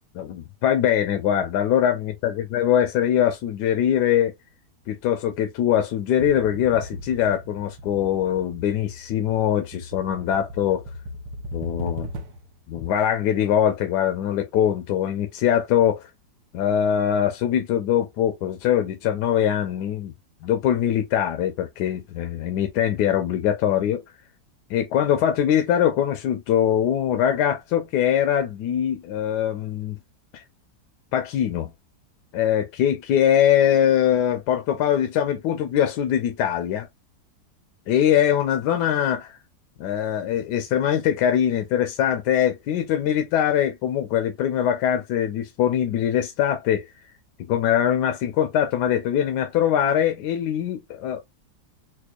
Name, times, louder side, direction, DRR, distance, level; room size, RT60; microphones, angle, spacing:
voice 1, 0.2-4.3 4.9-10.8 11.5-12.1 12.7-16.1 16.5-20.1 20.4-24.0 24.7-30.0 30.3-30.4 31.1-31.7 32.3-36.9 37.9-39.4 39.8-46.9 47.5-51.2, left 10 dB, 80° left, 1.2 m, -22 dB
sound 1, 6.2-12.6, left 1 dB, 90° right, 1.3 m, -37 dB
4.2 x 2.3 x 2.3 m
omnidirectional pair, 1.8 m